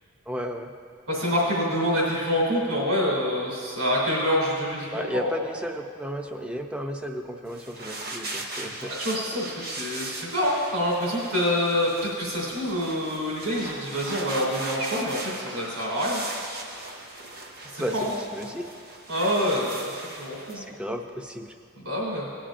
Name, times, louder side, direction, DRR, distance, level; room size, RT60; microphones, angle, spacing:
voice 1, 0.3-0.7 4.9-8.9 17.8-18.6 20.5-21.5, equal, 5° right, 4 dB, 0.5 m, -33 dB
voice 2, 1.1-5.3 9.0-16.3 17.6-18.1 19.1-19.9 20.2-20.6 21.8-22.3, equal, 70° right, -5 dB, 2.7 m, -26 dB
sound 1, 7.5-20.6, right 2 dB, 45° right, 1.1 m, -38 dB
18.0 x 10.0 x 2.5 m, 2.2 s
head